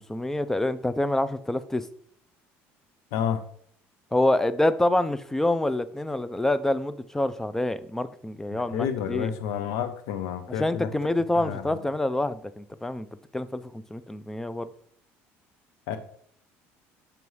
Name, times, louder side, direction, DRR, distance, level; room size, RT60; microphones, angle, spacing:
voice 1, 0.0-1.9 4.1-9.3 10.6-13.1 13.3-14.7, left 1 dB, 10° left, 14 dB, 0.4 m, -26 dB
voice 2, 3.1-3.4 8.5-10.9 11.4-11.9 15.9-16.0, left 8 dB, 80° left, 9 dB, 0.6 m, -30 dB
6.8 x 3.1 x 5.4 m, 0.63 s
cardioid pair, 110°, 5 cm